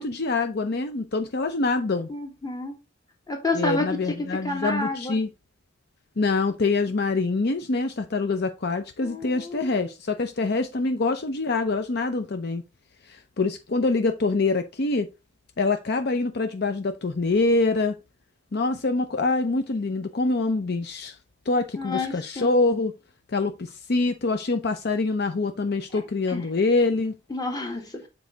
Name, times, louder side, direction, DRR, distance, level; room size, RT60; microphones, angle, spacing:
voice 1, 0.0-2.1 3.5-5.3 6.2-12.6 13.1-15.1 15.6-17.9 18.5-21.2 21.5-22.9 23.3-27.1, left 3 dB, 55° left, 0.6 m, -25 dB
voice 2, 2.1-2.8 3.3-5.2 9.0-9.9 21.8-22.6 25.9-26.0 26.3-26.5 27.3-28.1, left 2 dB, 20° left, 1.9 m, -30 dB
7.4 x 4.6 x 3.9 m
head